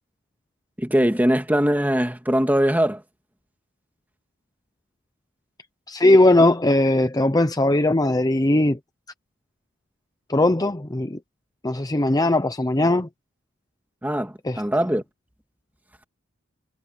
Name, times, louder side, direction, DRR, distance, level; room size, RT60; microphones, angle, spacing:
voice 1, 0.8-3.0 14.0-15.0, equal, 10° right, 2.0 m, -21 dB
voice 2, 5.9-8.8 10.3-11.2 11.6-13.1 14.5-14.6, left 1 dB, 20° left, 0.8 m, -19 dB
head